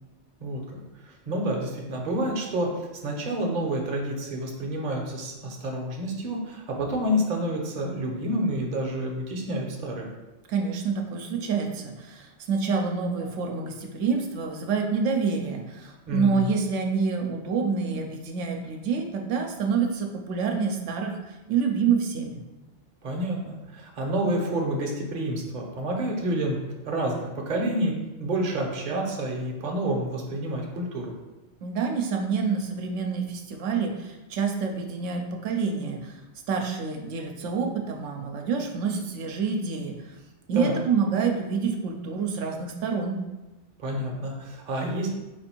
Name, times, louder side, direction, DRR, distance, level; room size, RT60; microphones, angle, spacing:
voice 1, 0.4-10.1 16.1-16.5 23.0-26.6 26.8-27.9 28.2-31.1 40.6-40.8 43.8-45.1, right 1 dB, 45° right, 0 dB, 0.8 m, -29 dB
voice 2, 10.5-21.2 21.5-22.4 31.6-36.2 36.5-40.0 40.5-43.2, right 5 dB, 80° right, 2 dB, 0.9 m, -27 dB
4.8 x 2.5 x 4.3 m, 1.1 s
omnidirectional pair, 1.2 m